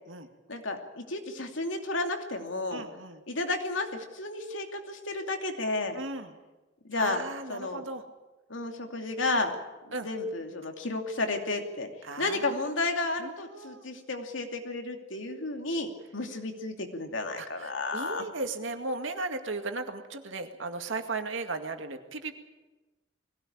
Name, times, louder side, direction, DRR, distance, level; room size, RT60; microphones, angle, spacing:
voice 1, 0.5-2.8 3.3-6.0 6.9-7.2 7.5-7.8 8.5-9.5 9.8-11.9 12.2-18.2, left 2 dB, 85° left, 4 dB, 2.7 m, -32 dB
voice 2, 2.7-3.2 5.9-6.3 7.0-8.0 9.9-10.1 12.0-12.4 13.2-13.9 17.4-22.3, right 3 dB, 80° right, 6 dB, 2.1 m, -36 dB
21.5 x 17.0 x 8.8 m, 1.1 s
head